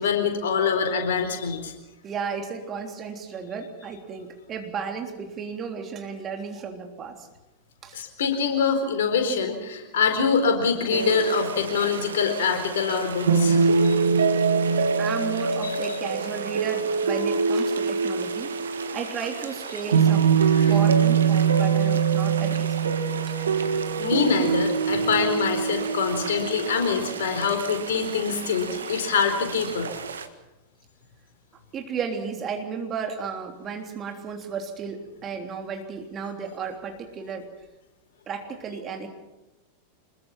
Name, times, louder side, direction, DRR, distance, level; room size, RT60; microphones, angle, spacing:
voice 1, 0.0-1.7 7.9-14.0 20.5-20.7 23.6-23.7 24.0-29.9, left 6 dB, 60° left, 6 dB, 4.3 m, -25 dB
voice 2, 2.0-7.3 7.8-8.0 15.0-18.5 18.9-23.4 31.7-37.5 38.3-39.1, right 6 dB, 25° right, 3 dB, 3.5 m, -34 dB
sound 1, 10.9-30.3, right 6 dB, 70° right, 1.7 m, -24 dB
26.0 x 22.0 x 6.0 m, 1.0 s
figure-of-eight pair, 90°, 0 cm